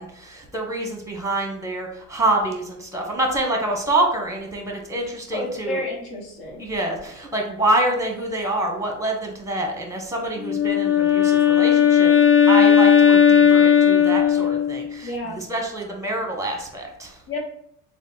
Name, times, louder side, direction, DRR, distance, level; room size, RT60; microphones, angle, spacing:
voice 1, 0.0-5.8 6.6-12.1 12.5-17.2, right 1 dB, 5° right, 2 dB, 1.1 m, -26 dB
voice 2, 5.3-6.7 15.0-15.5 17.3-17.4, left 2 dB, 50° left, 0 dB, 1.2 m, -30 dB
Wind instrument woodwind instrument, 10.4-14.9, left 8 dB, 30° left, 0.5 m, -16 dB
3.5 x 2.3 x 4.0 m, 0.72 s
hypercardioid pair, 70°, 46 cm